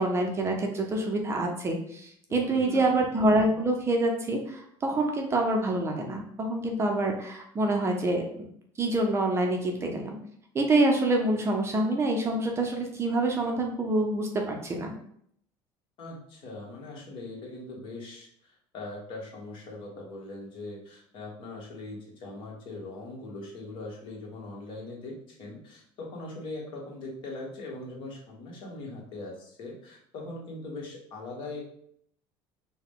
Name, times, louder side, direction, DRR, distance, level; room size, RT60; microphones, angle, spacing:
voice 1, 0.0-8.5 8.8-10.2 10.5-14.9, right 2 dB, 25° right, 2 dB, 0.6 m, -26 dB
voice 2, 2.3-3.0 16.0-31.6, left 2 dB, 55° left, -2 dB, 1.3 m, -41 dB
4.6 x 2.2 x 3.6 m, 0.66 s
cardioid pair, 135°, 11 cm